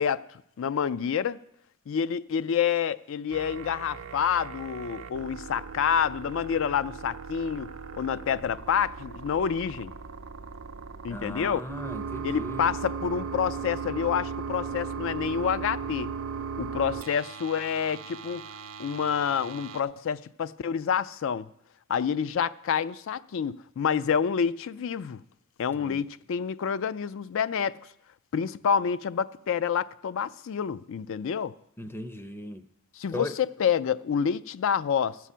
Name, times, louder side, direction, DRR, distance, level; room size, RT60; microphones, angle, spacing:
voice 1, 0.0-1.4 1.9-9.9 11.0-11.6 12.2-16.1 16.6-18.4 18.8-21.5 21.9-25.2 25.6-27.8 28.3-31.5 33.0-35.2, left 7 dB, 65° left, 0.4 m, -28 dB
sound 1, 3.3-19.8, right 5 dB, 75° right, 0.6 m, -38 dB
voice 2, 11.1-12.7 25.7-26.0 31.8-32.6 33.1-33.3, left 1 dB, 10° left, 0.5 m, -38 dB
13.5 x 6.2 x 5.6 m
head